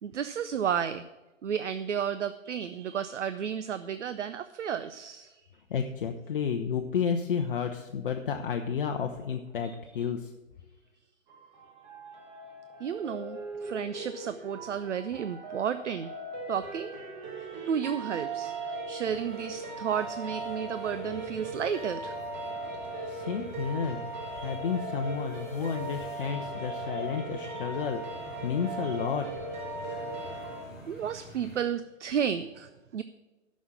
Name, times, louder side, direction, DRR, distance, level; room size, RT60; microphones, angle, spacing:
voice 1, 0.0-1.1 1.4-5.4 12.8-16.1 16.5-17.0 17.4-22.2 22.7-23.1 24.4-24.6 26.2-27.1 27.4-27.6 28.8-29.0 29.8-30.0 30.9-33.0, right 8 dB, 60° right, 12 dB, 0.6 m, -33 dB
voice 2, 5.7-10.3 23.1-29.3, left 7 dB, 45° left, 4 dB, 0.7 m, -31 dB
sound 1, 11.3-30.6, right 2 dB, 35° right, 1.7 m, -38 dB
sound 2, 19.0-31.6, right 1 dB, ahead, 0.4 m, -49 dB
11.0 x 6.3 x 7.3 m, 1.1 s
figure-of-eight pair, 130°, 40 cm